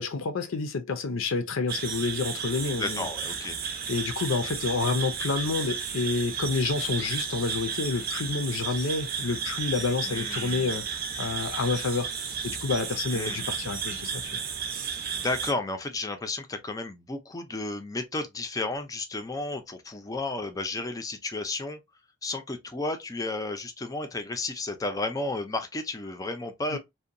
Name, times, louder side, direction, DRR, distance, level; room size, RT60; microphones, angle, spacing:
voice 1, 0.0-3.1 3.9-14.4 26.7-26.8, left 4 dB, 80° left, 0.5 m, -29 dB
sound 1, 1.7-15.5, right 6 dB, 50° right, 0.6 m, -33 dB
voice 2, 2.8-3.6 10.0-10.7 13.1-13.4 15.1-21.8 22.2-26.8, left 2 dB, 15° left, 0.4 m, -33 dB
2.8 x 2.1 x 2.5 m
head